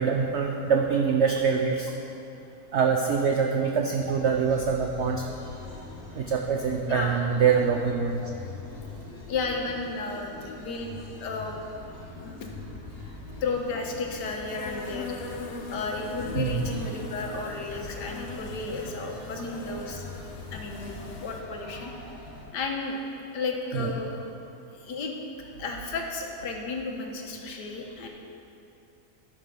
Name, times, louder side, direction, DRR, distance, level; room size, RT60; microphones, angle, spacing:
voice 1, 0.0-1.9 2.7-5.2 6.1-8.3 16.3-16.8 19.3-19.4 23.7-23.9, right 6 dB, 65° right, 2 dB, 0.7 m, -24 dB
sound 1, 4.0-22.4, left 2 dB, 35° left, 2.8 m, -42 dB
voice 2, 6.9-7.2 9.3-10.9 11.2-11.6 12.2-12.5 13.4-15.3 15.7-20.0 20.5-20.9 21.2-21.9 22.5-23.0 23.3-24.2 24.7-25.1 25.6-28.1, left 3 dB, 85° left, 1 dB, 1.7 m, -33 dB
Insect, 14.3-21.4, left 3 dB, 55° left, 0.7 m, -41 dB
12.0 x 6.6 x 5.1 m, 2.7 s
omnidirectional pair, 1.8 m